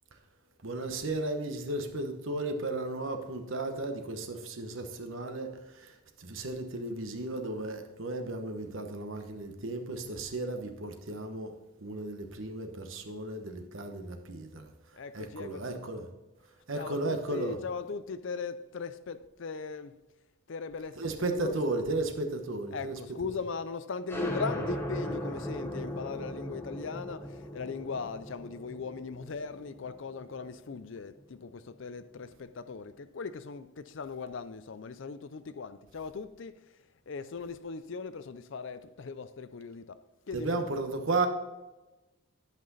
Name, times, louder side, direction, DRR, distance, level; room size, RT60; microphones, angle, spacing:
voice 1, 0.6-11.5 11.8-16.1 16.7-17.6 21.0-23.0 40.3-41.3, right 2 dB, 65° right, 1.0 m, -34 dB
voice 2, 15.0-15.8 16.7-19.9 20.5-21.6 22.7-27.2 27.5-32.3 32.6-36.5 37.1-39.9 40.3-40.6, left 5 dB, 60° left, 0.5 m, -39 dB
sound 1, 24.1-31.4, equal, 10° left, 1.1 m, -38 dB
10.5 x 5.9 x 4.1 m
head